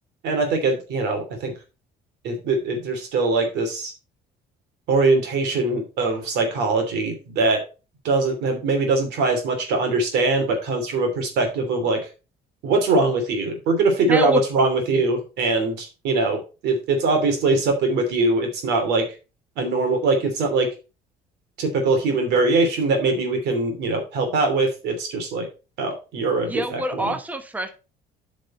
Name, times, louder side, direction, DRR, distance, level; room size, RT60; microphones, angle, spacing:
voice 1, 0.2-1.5 2.2-3.9 4.9-7.6 8.0-12.0 12.6-19.0 19.6-20.7 21.6-25.5 25.8-27.2, right 3 dB, 80° right, 4 dB, 2.8 m, -22 dB
voice 2, 14.0-14.4 26.5-27.7, equal, 10° right, 7 dB, 1.0 m, -26 dB
8.5 x 5.2 x 4.3 m, 0.32 s
cardioid pair, 110°, 17 cm